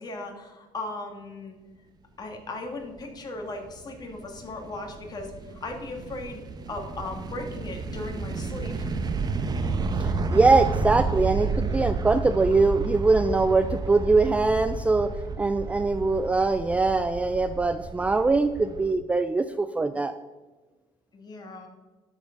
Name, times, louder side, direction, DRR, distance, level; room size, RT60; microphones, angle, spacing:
voice 1, 0.0-1.6 2.2-8.9 21.1-21.7, left 2 dB, 30° left, 2 dB, 2.0 m, -37 dB
sound 1, 3.4-18.9, right 4 dB, 30° right, 0.9 m, -31 dB
voice 2, 10.0-20.1, right 3 dB, 10° right, 10 dB, 0.3 m, -22 dB
12.5 x 4.9 x 5.2 m, 1.2 s
cardioid pair, 120°, 13 cm